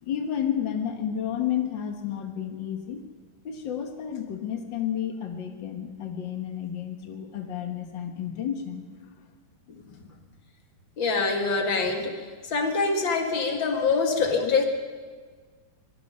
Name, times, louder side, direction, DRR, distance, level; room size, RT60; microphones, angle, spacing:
voice 1, 0.0-3.0 3.4-8.8, left 9 dB, 65° left, 4 dB, 1.1 m, -31 dB
voice 2, 11.0-14.6, left 4 dB, 40° left, 3 dB, 2.2 m, -25 dB
22.5 x 22.5 x 5.6 m, 1.5 s
omnidirectional pair, 4.1 m